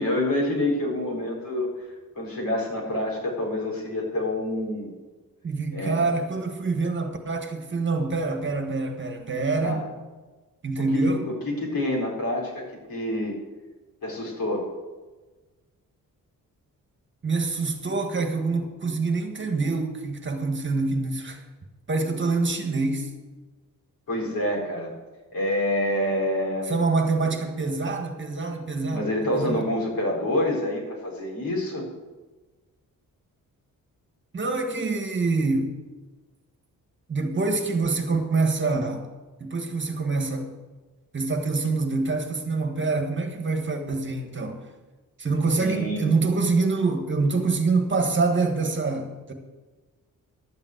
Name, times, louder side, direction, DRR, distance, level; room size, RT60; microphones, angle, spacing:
voice 1, 0.0-1.7 2.2-4.9 5.7-6.1 9.6-9.8 10.8-13.3 14.0-14.7 24.1-24.9 25.3-26.8 28.9-31.8 45.6-46.1, left 1 dB, 75° left, -2 dB, 4.7 m, -27 dB
voice 2, 5.4-9.8 10.6-11.2 17.2-21.4 21.9-23.1 26.7-29.0 29.3-29.6 34.3-35.7 37.1-39.1 39.4-40.5 41.1-44.7 45.2-49.3, right 3 dB, 35° right, 5 dB, 1.7 m, -25 dB
12.0 x 7.2 x 8.1 m, 1.3 s
cardioid pair, 105°, 35 cm